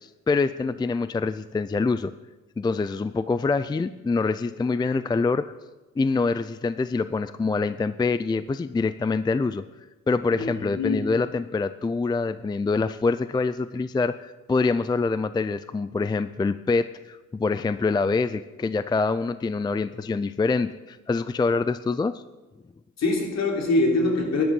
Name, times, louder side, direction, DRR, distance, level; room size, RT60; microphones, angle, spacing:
voice 1, 0.0-2.1 2.6-5.5 6.0-9.6 10.1-22.2, left 4 dB, 15° left, 14 dB, 0.4 m, -25 dB
voice 2, 10.3-11.1 23.0-24.4, left 2 dB, 60° left, 1 dB, 3.5 m, -24 dB
13.5 x 11.0 x 5.3 m, 1.1 s
cardioid pair, 90°, 30 cm